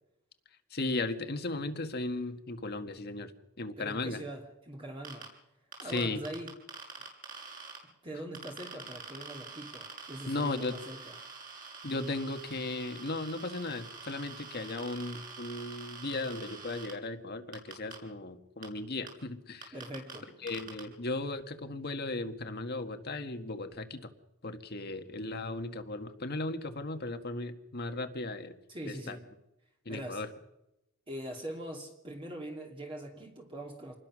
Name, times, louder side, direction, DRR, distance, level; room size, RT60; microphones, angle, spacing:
voice 1, 0.7-3.3 3.6-4.2 5.8-6.2 10.3-10.8 11.8-19.8 20.4-24.1 24.4-28.5 28.9-29.2 29.9-30.3, left 2 dB, 50° left, 7 dB, 1.7 m, -36 dB
voice 2, 3.8-5.3 5.8-6.5 8.0-11.2 19.7-20.3 28.7-29.3 29.9-30.2 31.1-33.9, right 1 dB, 25° right, 0 dB, 2.7 m, -42 dB
sound 1, 5.0-5.3 5.7-7.8 8.3-16.9 17.5-17.9 18.6-18.7 19.1-19.2 19.6-20.2 20.5-20.8, right 5 dB, 40° right, 6.8 m, -46 dB
27.0 x 21.0 x 6.3 m, 0.90 s
head